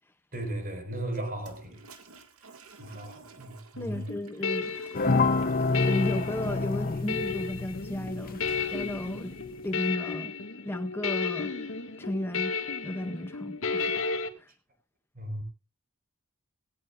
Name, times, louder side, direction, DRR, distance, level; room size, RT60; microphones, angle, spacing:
voice 1, 0.3-1.8 2.8-4.1 15.1-15.4, right 1 dB, 40° right, 4.8 m, -36 dB
Toilet flush, 1.4-8.6, right 4 dB, 80° right, 2.1 m, -53 dB
sound 1, 3.8-14.3, left 5 dB, 65° left, 1.9 m, -33 dB
voice 2, 3.8-4.7 5.8-9.4 9.6-10.3 10.6-11.5 12.0-12.6 12.8-14.1 14.4-14.5, left 1 dB, 10° left, 0.6 m, -34 dB
sound 2, 4.9-9.6, left 3 dB, 40° left, 0.8 m, -28 dB
18.0 x 17.5 x 2.5 m
head